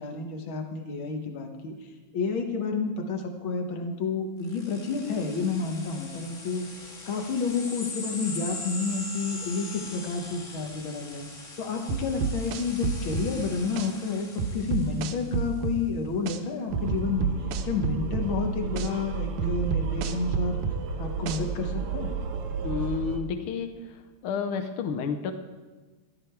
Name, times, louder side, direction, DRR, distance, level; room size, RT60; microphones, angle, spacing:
voice 1, 0.0-1.7 2.1-6.6 7.1-11.2 11.6-17.3 17.6-20.6 21.0-22.1, left 4 dB, 55° left, 3 dB, 1.5 m, -30 dB
sound 1, 4.4-15.5, left 2 dB, 30° left, 2.0 m, -41 dB
sound 2, 11.9-13.3 13.8-13.9 14.4-15.8 16.3-16.4 16.7-18.3 18.8-18.9 19.4-20.8 21.3-21.4, right 6 dB, 80° right, 2.2 m, -29 dB
sound 3, 16.7-23.2, right 6 dB, 60° right, 1.6 m, -33 dB
voice 2, 22.6-23.7 24.2-25.3, left 6 dB, 80° left, 7 dB, 1.2 m, -30 dB
13.0 x 12.0 x 4.6 m, 1.2 s
omnidirectional pair, 3.5 m